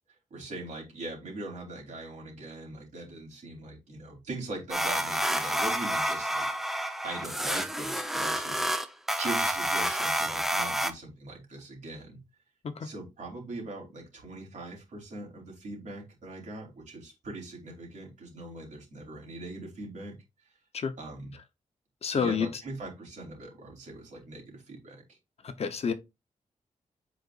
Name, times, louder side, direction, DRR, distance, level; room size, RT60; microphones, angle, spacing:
voice 1, 0.3-6.5 7.0-8.7 9.2-12.2 12.8-20.2 21.0-21.3 22.0-25.2, right 2 dB, 65° right, 3.6 m, -41 dB
sound 1, 4.7-10.9, equal, ahead, 0.7 m, -29 dB
voice 2, 22.0-22.5 25.4-25.9, left 6 dB, 50° left, 0.8 m, -29 dB
8.1 x 5.0 x 2.5 m
wide cardioid pair, 160°, 13 cm